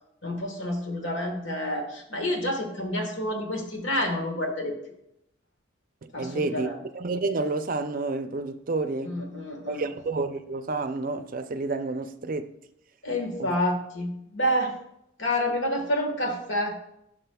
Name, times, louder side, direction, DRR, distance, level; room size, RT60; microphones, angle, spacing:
voice 1, 0.2-4.7 6.1-6.8 9.0-9.9 13.0-14.8 15.2-16.8, left 1 dB, 75° left, 1.5 m, -28 dB
voice 2, 6.0-6.7 6.9-9.2 9.7-12.5 13.4-13.6, right 3 dB, 45° right, 0.5 m, -30 dB
12.0 x 6.0 x 2.3 m
head